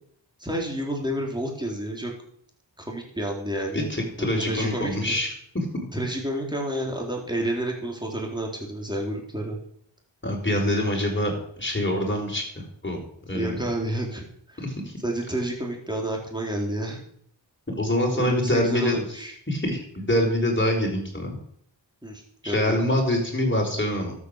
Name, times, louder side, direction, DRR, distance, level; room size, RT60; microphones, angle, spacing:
voice 1, 0.4-2.1 2.8-3.9 4.2-5.2 5.9-9.6 13.3-14.6 15.0-17.0 18.1-19.3 22.0-22.8, right 1 dB, 10° right, -1 dB, 4.1 m, -30 dB
voice 2, 3.7-5.3 5.5-5.6 10.2-13.0 13.3-13.6 14.6-14.9 17.7-18.9 19.5-21.4 22.4-24.1, left 1 dB, 25° left, 1 dB, 4.8 m, -25 dB
12.5 x 8.6 x 6.7 m, 0.64 s
wide cardioid pair, 55°, 45 cm